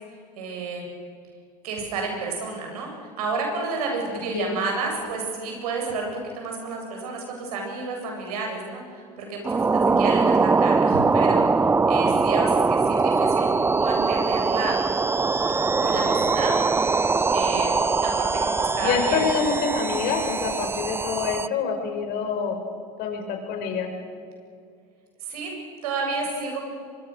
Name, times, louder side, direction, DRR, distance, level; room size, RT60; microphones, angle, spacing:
voice 1, 0.4-0.9 1.6-13.5 13.8-14.7 15.6-16.8 17.3-17.7 18.0-19.2 25.2-25.5 25.8-26.7, right 3 dB, 80° right, 1 dB, 7.9 m, -30 dB
voice 2, 4.1-4.6 18.8-22.6 23.0-23.9, left 6 dB, 55° left, 4 dB, 5.6 m, -26 dB
sound 1, 9.4-21.5, right 4 dB, 10° right, 0.5 m, -22 dB
24.5 x 23.5 x 6.6 m, 2.2 s
hypercardioid pair, 95°, 19 cm